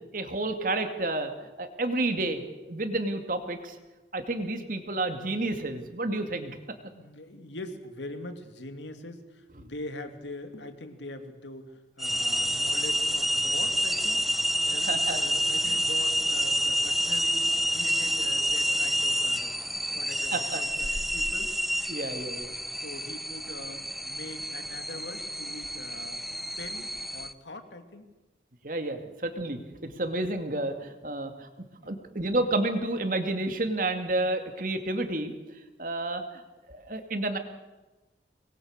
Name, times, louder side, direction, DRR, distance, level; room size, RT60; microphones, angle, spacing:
voice 1, 0.1-1.3 1.6-2.4 2.7-3.8 4.1-6.6 14.7-15.4 15.6-15.8 20.3-20.6 21.9-22.5 28.6-29.6 30.0-31.5 31.9-35.3 35.8-36.4 36.7-37.4, right 2 dB, 50° right, 6 dB, 2.5 m, -30 dB
voice 2, 6.9-14.2 14.7-21.5 22.8-26.2 26.6-28.1 31.8-32.0, left 1 dB, 90° left, 7 dB, 2.7 m, -43 dB
sound 1, 12.0-27.3, equal, ahead, 0.7 m, -28 dB
25.5 x 21.0 x 6.7 m, 1.1 s
head